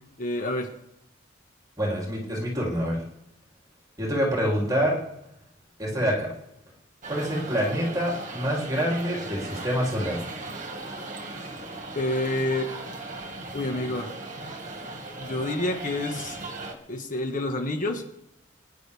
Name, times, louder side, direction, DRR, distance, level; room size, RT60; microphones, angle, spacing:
voice 1, 0.2-0.7 11.9-12.7 13.5-14.1 15.2-16.4 16.9-18.0, left 1 dB, 45° left, 4 dB, 1.7 m, -28 dB
voice 2, 1.8-3.0 4.0-5.0 5.8-6.3 7.1-10.3, equal, 20° right, -3 dB, 3.3 m, -26 dB
sound 1, 7.0-16.7, right 2 dB, 40° right, 1.9 m, -37 dB
21.5 x 10.5 x 3.6 m, 0.81 s
head